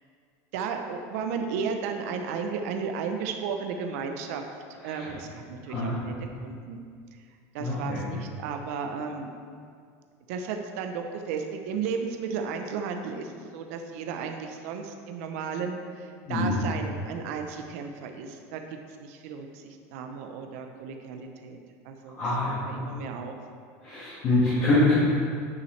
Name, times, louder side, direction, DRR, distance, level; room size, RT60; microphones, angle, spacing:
voice 1, 0.5-4.4 4.7-6.1 6.4-6.8 7.5-9.3 10.3-18.6 19.0-21.6 21.8-22.2 22.5-23.3, right 6 dB, 70° right, 4 dB, 0.6 m, -34 dB
voice 2, 7.6-8.0 16.3-16.5 22.2-22.7 23.8-24.9, left 2 dB, 30° left, -10 dB, 1.6 m, -24 dB
9.3 x 5.6 x 3.2 m, 2.1 s
cardioid pair, 160°, 8 cm